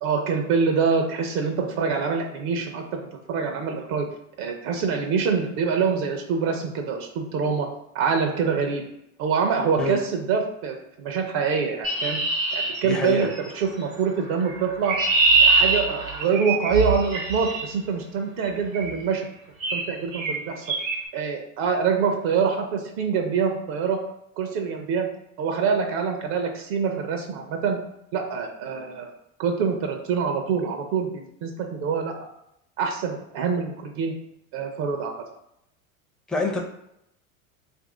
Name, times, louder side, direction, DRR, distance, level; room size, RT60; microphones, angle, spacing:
voice 1, 0.0-4.1 4.4-7.7 7.9-8.8 9.2-12.2 12.5-15.0 15.4-19.3 19.7-20.7 21.1-24.0 24.4-25.1 25.4-27.8 28.1-29.1 29.4-32.2 32.8-34.1 34.5-35.1, right 5 dB, 60° right, 3 dB, 0.7 m, -25 dB
Chirp tweet, 11.8-13.5 14.5-17.6 18.7-19.0 19.6-19.9 20.1-20.4 20.7-21.0, right 3 dB, 80° right, 1.1 m, -23 dB
voice 2, 12.8-13.3 36.3-36.6, left 3 dB, ahead, -1 dB, 0.5 m, -26 dB
2.8 x 2.6 x 3.7 m, 0.80 s
hypercardioid pair, 95°, 40 cm